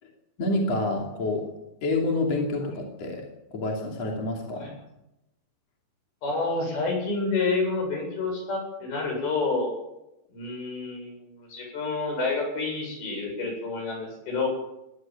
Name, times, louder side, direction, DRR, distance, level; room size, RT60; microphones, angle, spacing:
voice 1, 0.4-1.5 1.8-4.7, left 2 dB, 40° left, 0 dB, 3.6 m, -28 dB
voice 2, 6.2-9.7 10.3-14.5, left 3 dB, 60° left, 2 dB, 9.5 m, -29 dB
20.5 x 17.5 x 7.5 m, 0.88 s
omnidirectional pair, 5.1 m